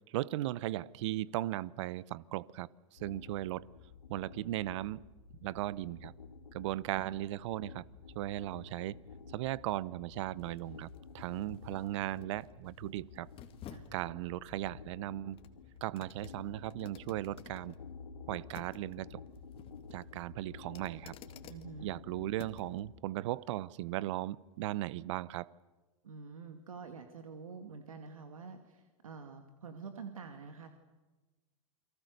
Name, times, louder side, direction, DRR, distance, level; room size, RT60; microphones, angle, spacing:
voice 1, 0.0-3.7 4.1-5.0 5.4-6.1 6.5-7.8 8.1-9.0 9.3-10.9 11.1-13.3 13.9-15.4 15.8-17.7 18.3-19.2 19.9-21.1 21.8-25.5, right 15 dB, 60° right, 22 dB, 0.9 m, -37 dB
sound 1, 3.0-22.9, left 5 dB, 90° left, 2.3 m, -52 dB
sound 2, 8.1-22.8 23.3-23.4, left 10 dB, 30° left, 2.2 m, -57 dB
voice 2, 21.4-21.9 26.0-30.7, right 5 dB, 85° right, 7 dB, 2.4 m, -47 dB
29.5 x 23.0 x 6.7 m, 1.2 s
hypercardioid pair, 115°, 17 cm